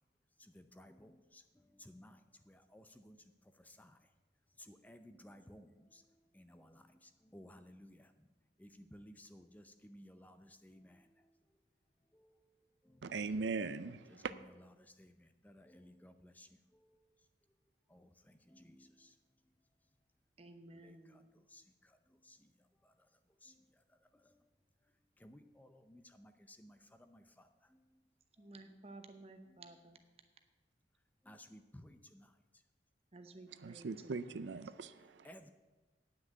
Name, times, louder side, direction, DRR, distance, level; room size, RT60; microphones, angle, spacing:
voice 1, 0.5-2.2 2.5-3.2 3.6-4.0 4.6-6.0 6.3-8.1 8.6-11.0 12.1-12.3 12.9-13.0 14.1-16.5 17.9-19.1 20.8-21.2 21.5-21.6 22.3-22.4 23.4-23.5 25.2-27.2 31.3-32.3 33.8-33.9 34.7-34.9 35.2-35.5, left 1 dB, 10° left, 8 dB, 0.5 m, -58 dB
voice 2, 13.0-14.3 33.6-35.3, right 4 dB, 80° right, 13 dB, 0.5 m, -40 dB
voice 3, 20.4-21.3 28.4-30.0 33.1-34.5, right 2 dB, 35° right, 7 dB, 0.9 m, -55 dB
9.7 x 6.2 x 8.7 m, 1.2 s
head